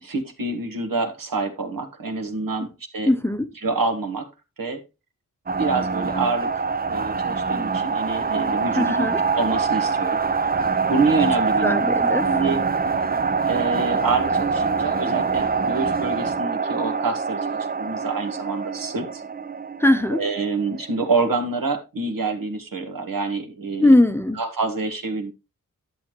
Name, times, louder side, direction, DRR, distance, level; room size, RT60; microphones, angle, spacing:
voice 1, 0.0-3.1 3.6-4.3 4.6-4.8 5.6-9.1 9.3-10.2 10.9-11.8 12.3-12.6 13.4-19.2 20.1-23.9 24.3-25.3, right 3 dB, 80° right, 1.6 m, -26 dB
voice 2, 3.1-3.5 8.8-9.2 11.6-12.3 19.8-20.2 23.8-24.4, left 1 dB, 5° left, 0.7 m, -19 dB
sound 1, 5.5-21.3, right 5 dB, 30° right, 0.5 m, -24 dB
11.0 x 7.1 x 3.0 m
wide cardioid pair, 80°, 34 cm